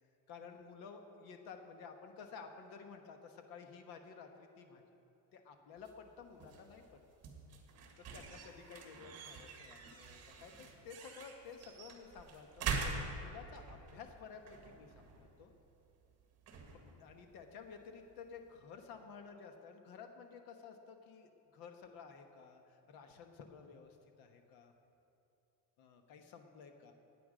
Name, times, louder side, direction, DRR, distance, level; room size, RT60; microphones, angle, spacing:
voice 1, 0.3-4.8 5.3-7.0 8.0-12.7 13.2-15.5 17.0-24.7 25.8-26.9, left 6 dB, 65° left, 5 dB, 1.4 m, -53 dB
sound 1, 5.8-18.5, right 4 dB, 40° right, 1.8 m, -46 dB
16.5 x 9.3 x 5.1 m, 2.7 s
cardioid pair, 160°, 38 cm